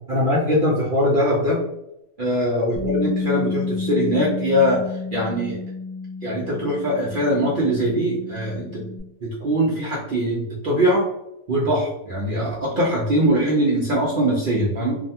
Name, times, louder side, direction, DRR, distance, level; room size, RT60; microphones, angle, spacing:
voice 1, 0.1-1.6 2.2-5.6 6.2-8.8 9.2-11.1 11.5-15.0, equal, 75° right, -5 dB, 0.4 m, -21 dB
Bass guitar, 2.8-9.0, left 4 dB, ahead, 0.8 m, -30 dB
2.7 x 2.1 x 2.7 m, 0.85 s
omnidirectional pair, 1.6 m